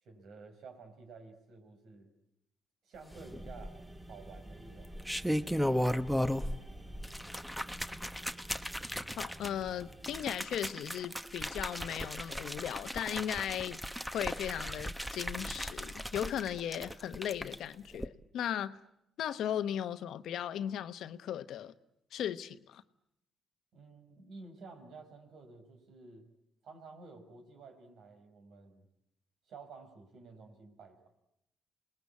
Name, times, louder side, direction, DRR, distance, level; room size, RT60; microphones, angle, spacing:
voice 1, 0.0-2.1 2.8-3.8 4.1-4.9 6.1-6.6 7.2-7.4 23.7-26.3 26.6-28.9 29.5-31.0, right 4 dB, 70° right, 5.4 m, -52 dB
sound 1, 3.1-10.3, right 1 dB, 20° right, 2.8 m, -51 dB
sound 2, 3.3-4.0 4.8-6.6 6.9-17.6 17.9-18.1, equal, ahead, 1.0 m, -36 dB
voice 2, 9.2-13.8 14.1-18.8 19.2-21.7 22.1-22.8, left 10 dB, 75° left, 1.0 m, -37 dB
27.0 x 20.0 x 8.5 m
cardioid pair, 90°, 0 cm